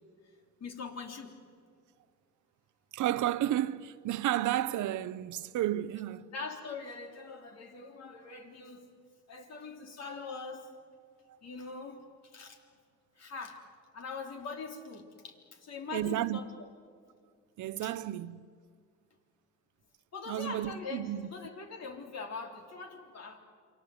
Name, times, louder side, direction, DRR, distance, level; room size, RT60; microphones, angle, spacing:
voice 1, 0.6-1.4 6.3-8.9 9.3-10.7 11.4-12.6 13.2-13.6 13.9-16.5 17.8-18.0 20.1-23.4, left 4 dB, 60° left, 3.5 m, -42 dB
voice 2, 2.9-6.3 15.9-16.4 17.6-18.4 20.3-21.3, right 13 dB, 75° right, 0.8 m, -32 dB
28.0 x 24.5 x 7.9 m
cardioid pair, 90°, 30 cm